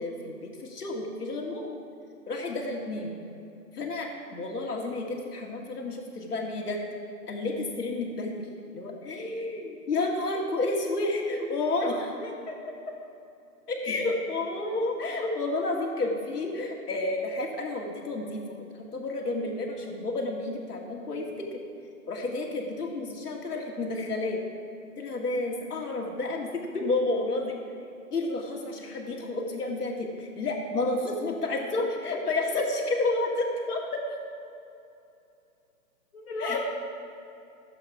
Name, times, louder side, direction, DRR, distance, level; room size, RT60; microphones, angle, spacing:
voice 1, 0.0-1.8 2.3-3.2 3.7-6.8 7.3-8.5 8.7-12.1 13.7-18.6 18.9-21.6 22.1-24.4 25.0-27.6 28.1-34.0 36.4-36.6, left 2 dB, 80° left, 0 dB, 2.1 m, -30 dB
voice 2, 12.0-13.0 36.1-36.6, left 2 dB, 40° left, -4 dB, 2.3 m, -37 dB
14.5 x 7.8 x 4.8 m, 2.7 s
hypercardioid pair, 175°, 45 cm